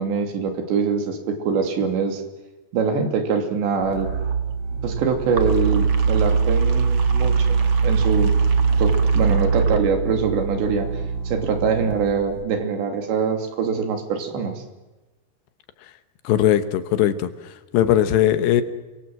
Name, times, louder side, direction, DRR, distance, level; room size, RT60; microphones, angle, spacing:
voice 1, 0.0-2.2 2.7-4.1 4.8-7.5 7.8-8.3 8.8-10.9 11.3-14.5, right 5 dB, 85° right, 5 dB, 5.0 m, -23 dB
sound 1, 3.8-12.4, right 5 dB, 50° right, 1.8 m, -21 dB
voice 2, 16.2-17.3 17.7-18.6, left 11 dB, 80° left, 10 dB, 3.4 m, -19 dB
27.5 x 24.0 x 7.7 m, 1.1 s
omnidirectional pair, 5.0 m